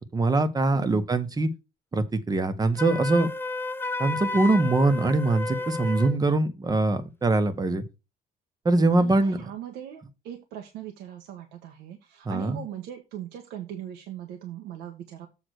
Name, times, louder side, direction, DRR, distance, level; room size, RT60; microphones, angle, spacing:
voice 1, 0.1-1.5 1.9-3.3 4.0-7.8 8.6-9.4 12.2-12.6, right 2 dB, 20° right, 1.3 m, -23 dB
Wind instrument woodwind instrument, 2.8-6.2, left 2 dB, 10° left, 0.6 m, -32 dB
voice 2, 8.7-15.3, right 11 dB, 85° right, 1.3 m, -40 dB
7.8 x 3.9 x 6.4 m
cardioid pair, 110°, 17 cm